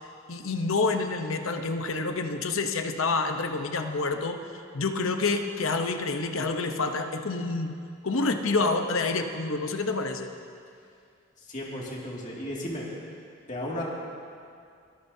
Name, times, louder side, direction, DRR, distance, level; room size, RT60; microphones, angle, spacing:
voice 1, 0.3-4.4 4.7-10.3, left 3 dB, 75° left, 6 dB, 0.9 m, -28 dB
voice 2, 11.4-12.9 13.5-13.8, left 1 dB, 35° left, -4 dB, 2.3 m, -34 dB
22.5 x 13.5 x 2.8 m, 2.3 s
head